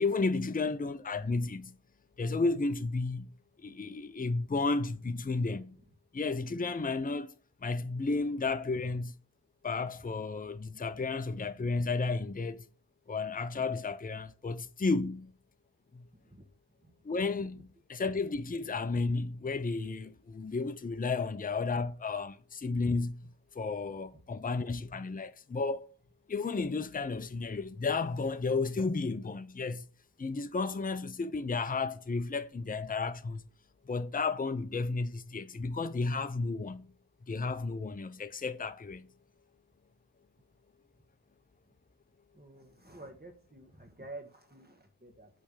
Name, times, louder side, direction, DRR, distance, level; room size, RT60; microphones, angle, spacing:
voice 1, 0.0-1.8 2.2-3.3 3.6-5.8 6.1-7.3 7.6-9.1 9.6-12.7 13.1-15.3 15.9-16.1 17.0-23.3 23.5-25.9 26.3-29.8 30.2-33.5 33.9-36.9 37.3-39.1, left 3 dB, 20° left, 0.5 m, -33 dB
voice 2, 42.3-45.3, right 2 dB, 20° right, 1.5 m, -50 dB
8.5 x 3.4 x 6.4 m
wide cardioid pair, 75°, 42 cm